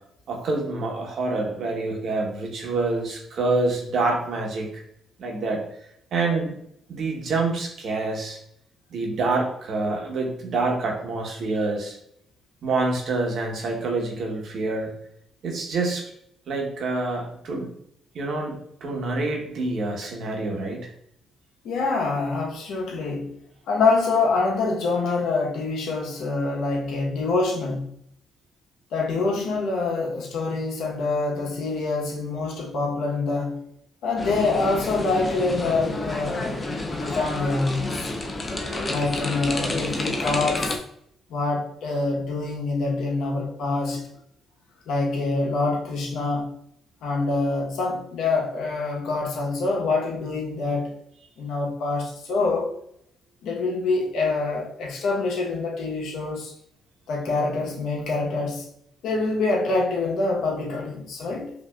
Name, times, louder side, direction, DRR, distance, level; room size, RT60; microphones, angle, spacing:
voice 1, 0.3-4.8 5.2-5.6 6.1-6.5 6.9-8.4 8.9-12.0 12.6-14.9 15.4-16.0 16.5-17.7 18.1-18.6 18.8-20.9, right 3 dB, 65° right, 0 dB, 1.1 m, -26 dB
voice 2, 21.6-23.3 23.7-27.9 28.9-33.6 34.0-36.6 36.9-38.1 38.9-40.8 41.3-44.0 44.9-46.5 47.0-50.9 51.4-52.7 53.4-56.5 57.1-58.7 59.0-61.5, left 3 dB, 80° left, -1 dB, 1.0 m, -25 dB
sound 1, 34.2-40.8, left 2 dB, 30° left, 0.6 m, -29 dB
5.1 x 2.7 x 2.3 m, 0.71 s
cardioid pair, 90°, 0 cm